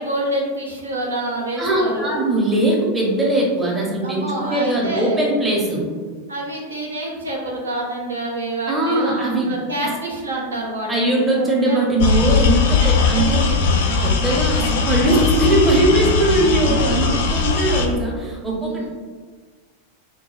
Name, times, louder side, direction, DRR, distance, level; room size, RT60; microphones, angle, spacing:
voice 1, 0.0-2.3 4.0-5.2 6.3-11.9 12.8-13.6 13.9-14.2 16.3-17.1 18.6-18.9, right 1 dB, 75° right, -2 dB, 0.5 m, -27 dB
voice 2, 1.6-5.9 8.7-9.6 10.9-13.5 14.0-18.9, right 2 dB, 10° right, -4 dB, 0.7 m, -20 dB
sound 1, 12.0-17.9, left 5 dB, 60° left, 0.3 m, -19 dB
2.2 x 2.2 x 2.9 m, 1.5 s
figure-of-eight pair, 90°, 0 cm